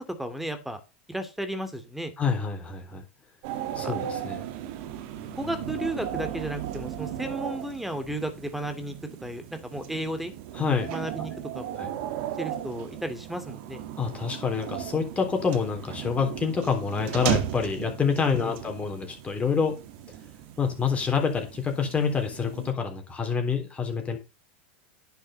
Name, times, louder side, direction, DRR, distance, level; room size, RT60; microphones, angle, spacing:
voice 1, 0.2-0.8 1.1-2.1 3.8-3.9 5.3-8.9 9.2-10.3 10.8-11.8 12.4-13.8 18.4-18.6, right 1 dB, ahead, 9 dB, 2.5 m, -34 dB
voice 2, 2.2-3.0 3.8-4.4 10.5-10.9 11.2-11.3 11.8-11.9 14.0-19.8 20.6-24.2, left 5 dB, 20° left, 3 dB, 3.6 m, -27 dB
sound 1, 3.4-22.7, right 11 dB, 60° right, 1.8 m, -36 dB
10.5 x 7.0 x 5.5 m, 0.29 s
hypercardioid pair, 110°, 6 cm